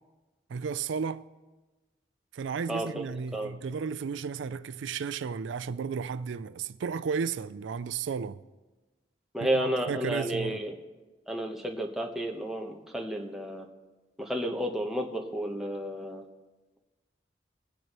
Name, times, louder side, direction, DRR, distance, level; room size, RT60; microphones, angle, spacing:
voice 1, 0.5-1.3 2.3-8.4 9.4-10.6, right 6 dB, 85° right, 0.4 m, -33 dB
voice 2, 2.7-3.0 3.3-3.5 9.3-10.8 11.3-13.7 14.2-16.2, right 1 dB, ahead, 1.0 m, -32 dB
22.5 x 9.3 x 3.0 m
head